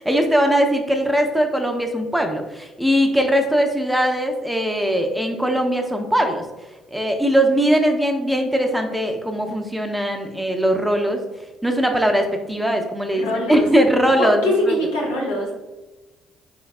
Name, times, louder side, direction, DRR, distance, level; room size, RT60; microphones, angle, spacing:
voice 1, 0.0-6.4 6.9-11.2 11.6-14.7, equal, 5° right, 3 dB, 0.4 m, -20 dB
voice 2, 13.1-13.6 14.2-15.5, left 1 dB, 85° left, -3 dB, 0.6 m, -22 dB
3.4 x 2.1 x 2.3 m, 1.1 s
hypercardioid pair, 50°, 0 cm